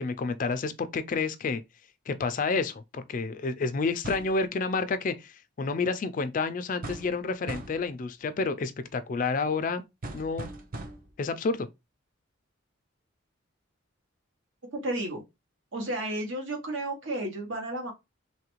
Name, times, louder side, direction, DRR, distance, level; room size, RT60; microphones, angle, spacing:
voice 1, 0.0-1.6 2.1-9.8 10.1-10.5 11.2-11.7, left 4 dB, 40° left, 0.3 m, -29 dB
sound 1, 4.0-4.4 6.8-7.2 7.5-7.9 10.0-11.2, right 2 dB, 45° right, 0.5 m, -39 dB
voice 2, 14.7-15.2 15.7-17.9, right 1 dB, 70° right, 1.0 m, -32 dB
3.1 x 2.4 x 3.0 m
head